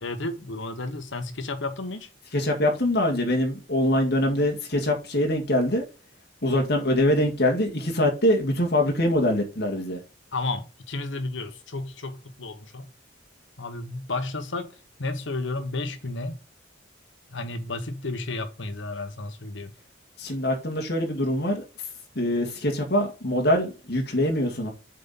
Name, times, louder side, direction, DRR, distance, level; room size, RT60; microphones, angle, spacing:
voice 1, 0.0-2.1 10.3-12.9 13.6-16.4 17.3-19.7, left 2 dB, 70° left, 1.1 m, -32 dB
voice 2, 2.3-5.8 6.4-10.0 20.2-21.6 22.2-24.7, left 1 dB, 50° left, 1.9 m, -24 dB
7.4 x 4.3 x 3.8 m
head